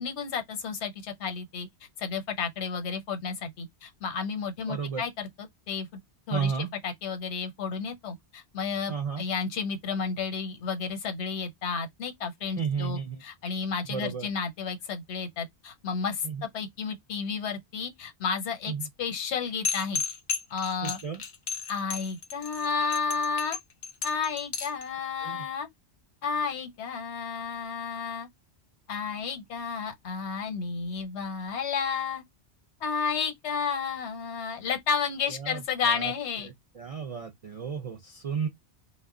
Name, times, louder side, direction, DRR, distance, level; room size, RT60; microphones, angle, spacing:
voice 1, 0.0-1.7 2.0-6.0 6.3-6.5 6.8-16.3 16.5-18.7 19.0-20.0 20.5-21.0 21.7-23.6 24.0-25.7 26.2-28.3 28.9-32.2 32.8-36.5, left 5 dB, 85° left, 1.0 m, -32 dB
voice 2, 4.7-5.0 6.3-6.7 8.9-9.2 12.6-13.2 13.9-14.3 16.2-16.4 18.7-18.9 20.8-21.2 25.2-25.5 35.3-36.1 36.7-38.5, right 6 dB, 65° right, 0.3 m, -33 dB
sound 1, 19.6-24.8, left 6 dB, 55° left, 0.6 m, -33 dB
2.1 x 2.1 x 3.5 m
omnidirectional pair, 1.1 m